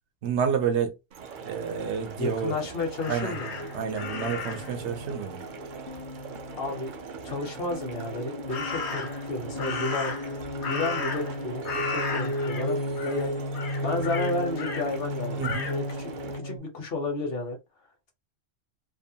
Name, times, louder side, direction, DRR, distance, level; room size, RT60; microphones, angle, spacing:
voice 1, 0.2-1.0 1.4-2.5 3.1-3.3 3.7-5.4 15.4-15.7, right 7 dB, 85° right, 1.0 m, -29 dB
sound 1, 1.1-16.4, right 6 dB, 55° right, 0.6 m, -42 dB
voice 2, 2.2-3.7 6.5-6.9 7.2-10.2 10.6-13.3 13.8-17.6, left 2 dB, 60° left, 1.0 m, -32 dB
Crow, 3.0-4.7 8.5-9.2 9.6-11.4 11.6-12.7 13.0-13.2 13.5-14.8 15.4-15.8, left 4 dB, 85° left, 1.1 m, -34 dB
sound 2, 3.4-16.6, left 1 dB, 45° left, 0.3 m, -35 dB
2.8 x 2.1 x 2.7 m
omnidirectional pair, 1.1 m